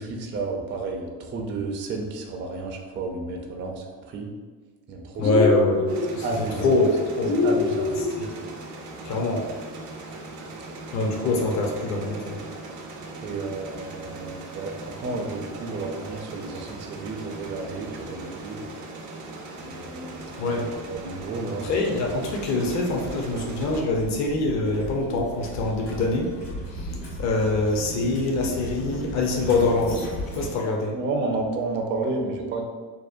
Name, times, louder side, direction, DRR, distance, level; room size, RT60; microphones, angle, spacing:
voice 1, 0.0-4.3 4.9-5.4 6.2-6.7 7.4-7.9 13.2-18.6 19.6-21.7 30.9-32.6, right 3 dB, 30° right, 1 dB, 0.4 m, -31 dB
sound 1, 5.2-6.1 7.2-8.1, left 4 dB, 90° left, 0.7 m, -24 dB
voice 2, 5.2-7.3 8.2-8.3 9.0-9.4 10.9-12.4 20.4-20.7 21.6-26.3 26.7-30.1 30.3-31.0, left 2 dB, 40° left, 0 dB, 0.6 m, -24 dB
sound 2, 5.9-23.8, right 2 dB, 80° right, 0.6 m, -39 dB
sound 3, 21.3-30.5, equal, 55° left, 1.3 m, -37 dB
2.7 x 2.0 x 2.4 m, 1.5 s
hypercardioid pair, 70°, 45 cm